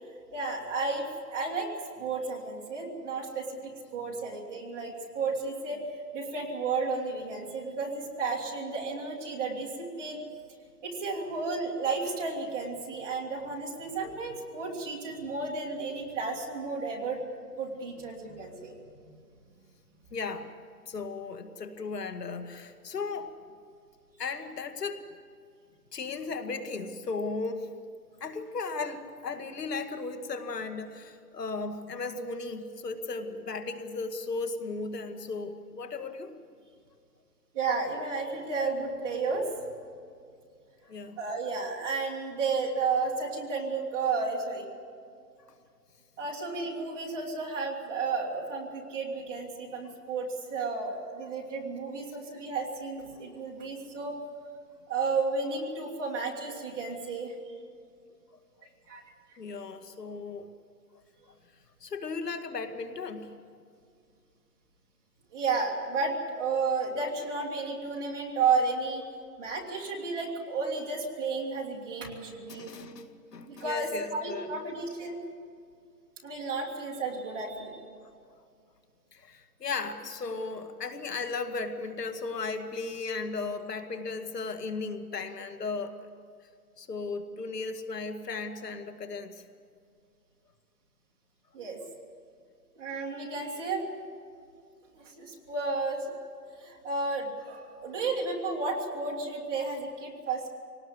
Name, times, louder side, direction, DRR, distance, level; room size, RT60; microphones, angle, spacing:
voice 1, 0.3-1.7 2.0-5.8 6.1-10.2 10.8-17.2 17.6-18.7 19.0-19.1 37.5-39.5 41.2-44.7 46.2-54.2 54.9-57.3 58.9-59.0 65.3-69.0 69.4-72.7 73.5-75.2 76.2-77.8 91.5-91.8 92.8-93.9 95.2-96.1 96.6-100.5, right 4 dB, 15° right, -4 dB, 2.1 m, -32 dB
voice 2, 20.1-20.5 20.9-23.3 24.2-25.0 25.9-27.7 28.2-36.3 40.8-41.2 59.4-60.5 61.8-63.3 72.5-74.5 78.0-78.1 79.1-86.1 86.8-89.4, left 4 dB, 75° left, 7 dB, 2.3 m, -36 dB
23.5 x 19.0 x 8.0 m, 2.3 s
hypercardioid pair, 175°, 49 cm